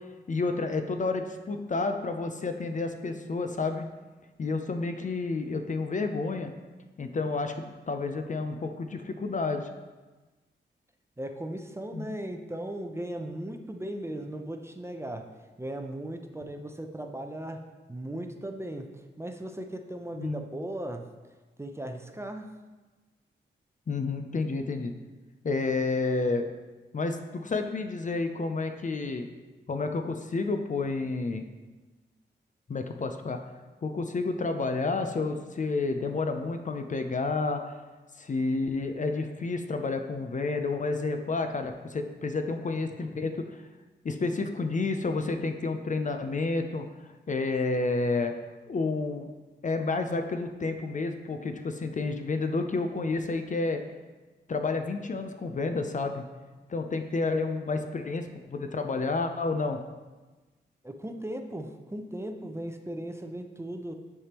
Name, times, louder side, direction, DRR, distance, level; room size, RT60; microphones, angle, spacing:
voice 1, 0.3-3.9 4.4-6.5 7.0-9.7 11.9-12.2 20.2-20.4 23.9-24.9 25.4-26.5 26.9-29.3 29.7-31.4 32.7-33.4 33.8-37.7 38.2-43.6 44.0-46.8 47.3-48.3 48.7-49.3 49.6-53.8 54.5-56.2 56.7-59.8, left 3 dB, 40° left, 6 dB, 0.5 m, -30 dB
voice 2, 11.2-15.3 15.6-17.6 17.9-21.0 21.6-22.5 60.8-63.9, right 1 dB, 15° right, 5 dB, 0.6 m, -37 dB
9.5 x 3.5 x 3.0 m, 1.2 s
cardioid pair, 60°, 19 cm